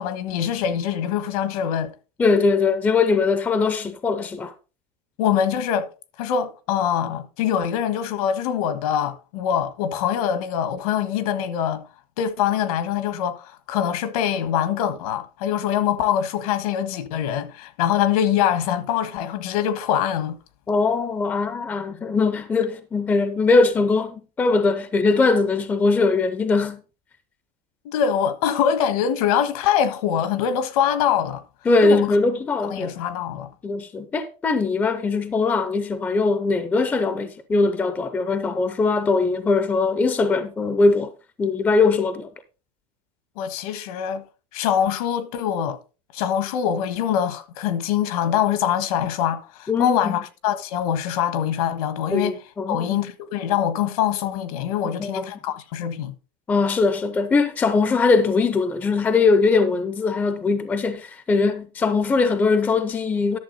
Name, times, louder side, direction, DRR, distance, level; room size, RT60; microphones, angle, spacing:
voice 1, 0.0-1.9 5.2-5.9 6.2-11.8 12.2-20.4 27.8-31.4 31.8-32.2 32.6-33.5 43.4-44.2 44.5-45.8 46.1-52.4 52.7-56.1, left 9 dB, 70° left, 1.5 m, -24 dB
voice 2, 2.2-4.5 20.7-26.8 31.7-33.0 33.6-41.1 41.4-42.3 49.7-50.2 52.1-53.1 55.0-55.3 56.5-63.4, left 4 dB, 10° left, 0.5 m, -21 dB
11.5 x 7.0 x 4.0 m
supercardioid pair, 180°, 20 cm